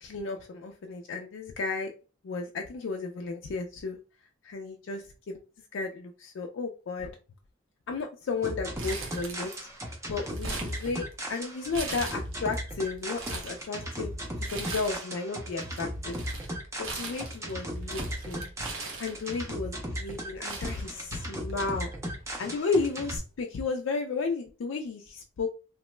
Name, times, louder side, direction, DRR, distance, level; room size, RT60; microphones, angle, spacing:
voice 1, 0.0-1.9 2.2-4.0 4.4-5.4 5.7-7.2 7.9-9.5 10.1-14.1 14.5-16.2 16.8-18.5 19.0-25.5, left 4 dB, 65° left, 3 dB, 0.4 m, -33 dB
sound 1, 8.4-23.2, equal, 15° right, 0.5 m, -37 dB
Crumpling crinkling, 8.8-9.8 10.0-11.3 11.7-12.6 13.0-13.6 14.4-15.2 15.5-19.5 20.1-20.2 20.5-21.5 21.8-21.9 22.9-23.1, right 3 dB, 85° right, 0.8 m, -39 dB
2.9 x 2.1 x 3.1 m, 0.34 s
head